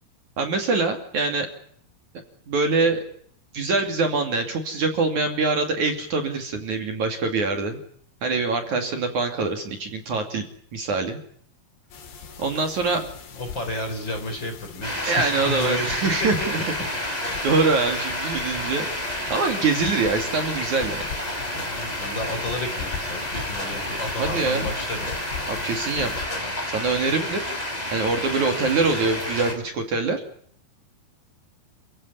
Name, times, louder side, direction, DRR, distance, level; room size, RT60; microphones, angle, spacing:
voice 1, 0.4-1.5 2.5-3.0 3.5-7.8 8.2-10.4 10.7-11.2 12.4-13.0 15.1-16.6 17.0-18.9 19.3-21.0 24.2-24.7 25.5-26.1 26.7-27.4 27.9-30.2, right 3 dB, 50° right, 5 dB, 3.7 m, -24 dB
sound 1, 11.9-26.3, left 6 dB, 90° left, 5.2 m, -40 dB
voice 2, 13.4-16.1 21.5-25.1 26.0-26.2, left 1 dB, 30° left, 6 dB, 4.2 m, -32 dB
sound 2, 14.8-29.5, left 1 dB, 10° left, 4.7 m, -30 dB
29.0 x 15.5 x 9.9 m, 0.62 s
omnidirectional pair, 4.8 m